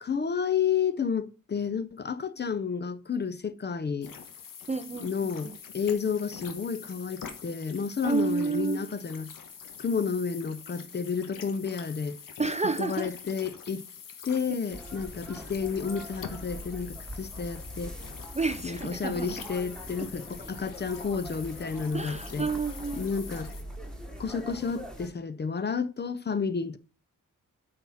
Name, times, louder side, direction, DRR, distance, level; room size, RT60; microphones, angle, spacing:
voice 1, 0.0-4.1 5.0-9.3 9.8-12.2 12.8-13.9 14.2-18.0 18.6-22.5 23.0-23.5 24.2-26.8, left 6 dB, 35° left, 0.5 m, -31 dB
sound 1, 4.0-23.6, left 7 dB, 90° left, 1.2 m, -45 dB
voice 2, 4.7-5.1 8.0-8.8 12.4-13.1 18.3-19.3 20.0-20.1 21.9-23.1, right 4 dB, 20° right, 0.3 m, -30 dB
sound 2, 14.7-25.1, right 1 dB, ahead, 1.3 m, -43 dB
8.6 x 4.2 x 5.5 m
wide cardioid pair, 165°, 32 cm